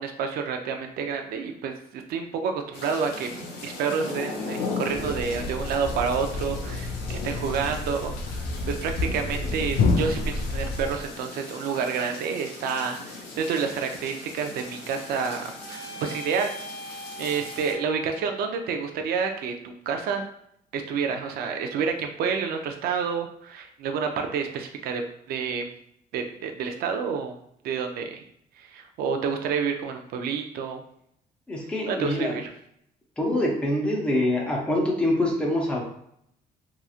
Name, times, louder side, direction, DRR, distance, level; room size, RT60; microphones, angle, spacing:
voice 1, 0.0-16.5 17.2-20.2 20.7-25.0 25.3-25.6 26.1-27.3 27.6-28.2 28.6-30.8 31.9-32.5, right 6 dB, 65° right, 5 dB, 0.4 m, -29 dB
sound 1, 2.7-17.7, left 3 dB, 80° left, 0.8 m, -38 dB
Thump thud, 4.9-11.1, left 3 dB, 55° left, 0.4 m, -29 dB
sound 2, 14.4-18.7, right 1 dB, 30° right, 1.0 m, -43 dB
voice 2, 31.5-32.4 33.2-35.8, left 1 dB, 5° left, -2 dB, 0.6 m, -25 dB
2.9 x 2.3 x 2.4 m, 0.72 s
cardioid pair, 110°, 17 cm